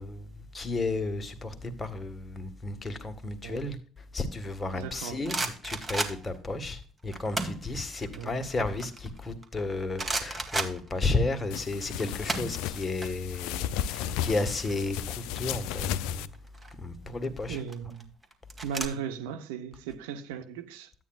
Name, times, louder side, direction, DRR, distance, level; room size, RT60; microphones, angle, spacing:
voice 1, 0.0-5.4 5.6-16.3 16.7-17.6, left 2 dB, 25° left, 1.7 m, -33 dB
voice 2, 4.6-5.5 8.1-8.4 17.0-18.1 18.6-20.9, right 8 dB, 80° right, 0.9 m, -37 dB
sound 1, 4.8-6.5 7.1-7.7 8.1-9.6 10.0-11.4 11.6-13.1 13.3-13.5 13.8-15.4 16.3-16.7 17.4-18.9, right 2 dB, 20° right, 1.9 m, -34 dB
sound 2, 11.5-16.3, left 10 dB, 70° left, 0.4 m, -34 dB
12.5 x 8.9 x 2.4 m
hypercardioid pair, 55°, 0 cm